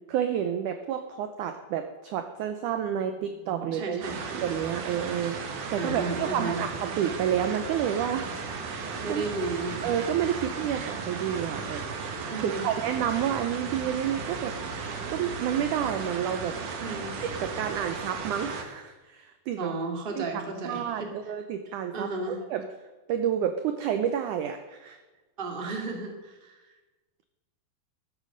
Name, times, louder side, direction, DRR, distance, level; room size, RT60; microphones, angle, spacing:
voice 1, 0.1-4.0 4.3-9.2 9.8-11.8 12.4-14.5 14.8-16.6 17.2-19.8 20.2-20.3 20.6-22.7 23.1-25.0, right 9 dB, 80° right, 8 dB, 1.8 m, -30 dB
voice 2, 3.7-4.2 5.8-6.6 9.0-10.0 12.3-12.7 16.8-17.2 19.6-21.1 21.9-22.4 25.4-26.7, right 3 dB, 20° right, 2 dB, 1.4 m, -33 dB
sound 1, 4.0-18.6, right 4 dB, 60° right, 2.7 m, -35 dB
13.5 x 9.8 x 6.6 m, 1.2 s
omnidirectional pair, 4.4 m